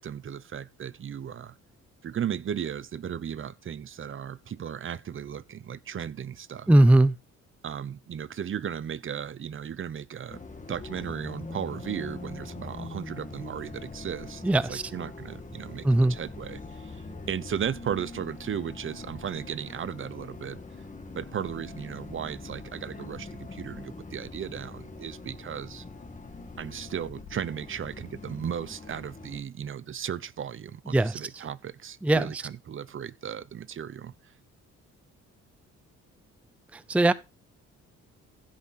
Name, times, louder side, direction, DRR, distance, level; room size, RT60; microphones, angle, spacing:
voice 1, 0.0-1.5 2.0-6.7 7.6-10.4 10.7-14.4 14.7-20.6 21.1-25.8 26.6-34.3, right 8 dB, 45° right, 0.8 m, -36 dB
voice 2, 6.7-7.1 14.4-14.8 15.8-16.1 30.9-31.2 32.0-32.4 36.7-37.1, right 1 dB, 5° right, 0.5 m, -20 dB
Bus, 10.3-29.4, left 3 dB, 25° left, 2.2 m, -43 dB
15.5 x 5.7 x 4.1 m
cardioid pair, 90°, 30 cm